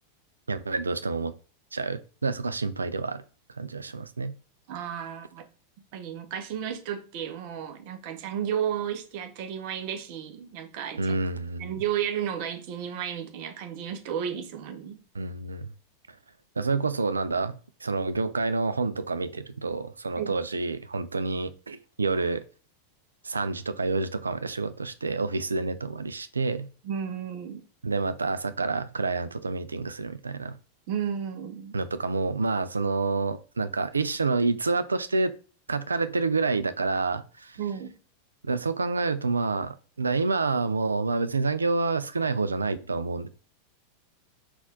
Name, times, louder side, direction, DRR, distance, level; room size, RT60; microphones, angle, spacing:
voice 1, 0.5-1.3 1.7-3.2 3.6-4.3 11.0-11.7 15.2-15.7 16.6-17.6 17.8-22.4 23.2-26.7 27.8-30.5 31.7-35.3 35.7-37.6 38.4-43.3, right 3 dB, 75° right, 0.3 m, -28 dB
voice 2, 4.7-5.4 5.8-11.2 11.6-15.0 20.2-20.3 26.8-27.6 30.9-31.8 37.6-37.9, right 9 dB, 45° right, 0.7 m, -33 dB
4.0 x 2.4 x 3.9 m
figure-of-eight pair, 90°, 0 cm